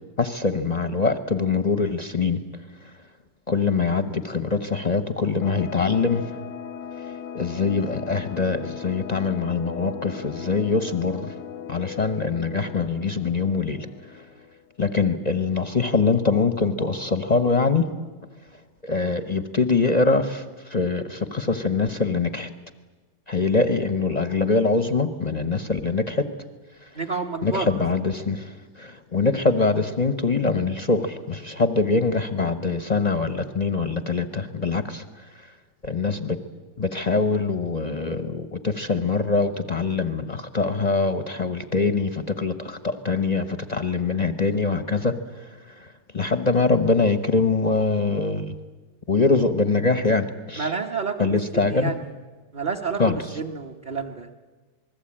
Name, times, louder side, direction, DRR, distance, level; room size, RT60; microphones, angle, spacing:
voice 1, 0.2-2.4 3.5-6.2 7.3-11.3 11.7-13.9 14.8-17.9 18.8-22.5 23.3-26.3 27.4-28.5 28.8-35.0 35.8-36.4 36.8-45.1 45.4-45.5 45.8-45.9 46.1-48.5 49.1-50.7 51.2-51.9 53.0-53.2, left 4 dB, 35° left, 11 dB, 0.7 m, -23 dB
sound 1, 5.4-14.7, left 8 dB, 90° left, 1.7 m, -38 dB
voice 2, 26.9-27.8 50.6-52.1 52.5-54.3, right 5 dB, 30° right, 0 dB, 1.0 m, -30 dB
27.0 x 20.5 x 8.8 m, 1.3 s
omnidirectional pair, 2.0 m